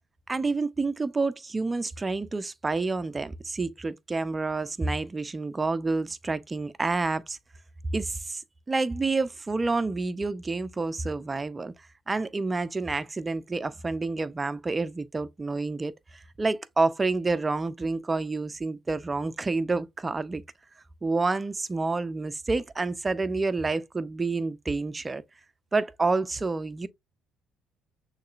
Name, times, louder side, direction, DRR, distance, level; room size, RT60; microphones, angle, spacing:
voice 1, 0.3-7.4 7.9-11.7 12.1-20.4 21.0-25.2 25.7-26.9, right 3 dB, 25° right, 0.6 m, -29 dB
6.4 x 3.2 x 2.5 m
supercardioid pair, 70°, 0 cm